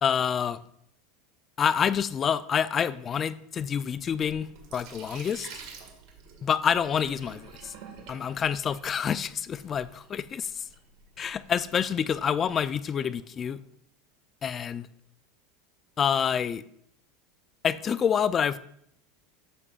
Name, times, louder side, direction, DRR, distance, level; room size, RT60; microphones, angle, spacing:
voice 1, 0.0-0.6 1.6-5.5 6.4-7.7 8.1-10.6 11.2-13.6 14.4-14.9 16.0-16.6 17.6-18.6, left 8 dB, 30° left, 0.4 m, -27 dB
Sink (filling or washing), 3.9-12.7, right 5 dB, 60° right, 1.9 m, -49 dB
13.5 x 6.8 x 2.5 m
supercardioid pair, 110°, 0 cm